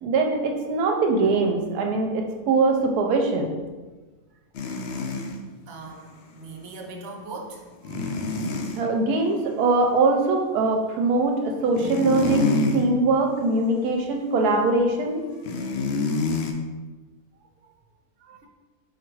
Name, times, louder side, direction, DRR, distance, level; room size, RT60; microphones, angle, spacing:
voice 1, 0.0-3.5 7.9-8.1 8.8-15.2 18.3-18.4, right 3 dB, 85° right, 2 dB, 1.1 m, -22 dB
sound 1, 4.5-5.4 7.8-8.8 11.6-12.8 13.3-13.6 15.4-16.5, left 3 dB, 85° left, 0.5 m, -26 dB
voice 2, 5.7-7.6, right 3 dB, 55° right, 0 dB, 0.8 m, -39 dB
4.1 x 2.5 x 4.5 m, 1.2 s
omnidirectional pair, 1.6 m